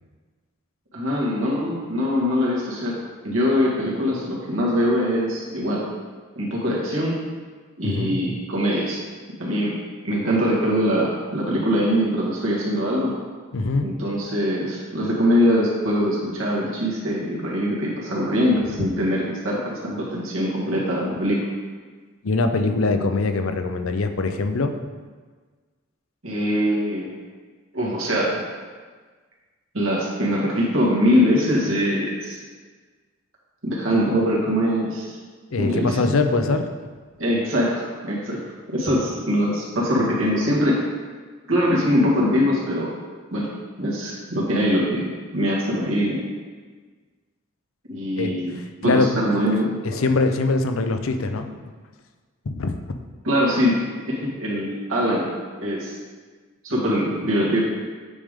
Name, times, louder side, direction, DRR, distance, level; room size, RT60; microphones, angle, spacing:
voice 1, 0.9-2.9 3.2-5.8 6.4-7.2 7.8-9.0 9.4-9.7 10.0-13.1 13.8-21.5 26.2-27.1 27.7-28.3 29.7-32.4 33.6-35.2 35.6-36.2 37.2-37.7 38.0-38.4 38.7-40.8 41.5-42.9 43.3-43.5 43.8-46.2 47.9-48.5 48.8-50.0 53.2-53.8 54.1-55.3 55.6-56.0 56.6-57.6, equal, 85° right, -5 dB, 1.9 m, -22 dB
voice 2, 7.8-8.2 13.5-13.9 22.2-24.7 35.5-36.7 48.2-49.1 49.8-51.5 52.5-52.8, left 3 dB, 85° left, 7 dB, 0.6 m, -22 dB
8.5 x 5.1 x 3.6 m, 1.4 s
head